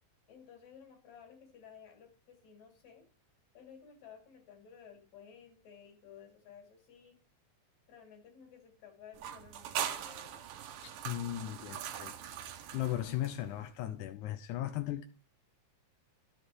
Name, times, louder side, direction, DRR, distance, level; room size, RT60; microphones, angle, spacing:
voice 1, 0.3-3.0 3.5-7.2 7.9-10.5, left 7 dB, 55° left, 3.6 m, -55 dB
sound 1, 9.1-13.7, right 10 dB, 75° right, 2.6 m, -41 dB
voice 2, 10.8-12.2 12.7-15.0, left 13 dB, 75° left, 1.9 m, -37 dB
12.5 x 6.6 x 4.6 m
omnidirectional pair, 4.0 m